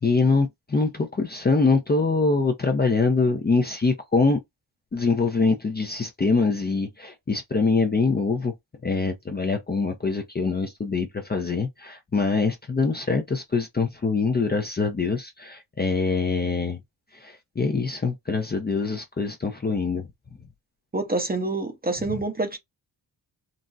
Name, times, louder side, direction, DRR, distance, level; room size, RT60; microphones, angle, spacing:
voice 1, 0.0-4.4 4.9-8.5 8.8-16.8 17.2-20.1, left 4 dB, 20° left, 0.5 m, -24 dB
voice 2, 20.9-22.6, right 2 dB, 20° right, 0.7 m, -27 dB
4.0 x 2.0 x 2.4 m
cardioid pair, 90°, 45 cm